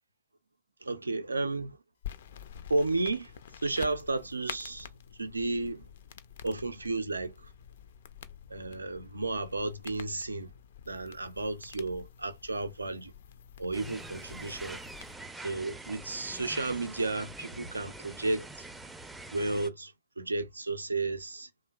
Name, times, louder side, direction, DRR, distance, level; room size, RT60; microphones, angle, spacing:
voice 1, 0.8-1.8 2.7-3.4 3.6-4.9 5.2-5.9 6.4-7.5 8.5-10.5 10.9-13.1 13.6-14.8 15.4-18.7 19.3-21.5, right 2 dB, 85° right, 0.4 m, -33 dB
sound 1, 2.0-15.1, left 9 dB, 60° left, 0.3 m, -48 dB
sound 2, 13.7-19.7, right 2 dB, 10° right, 0.4 m, -45 dB
2.9 x 2.1 x 2.3 m
figure-of-eight pair, 100°, 0 cm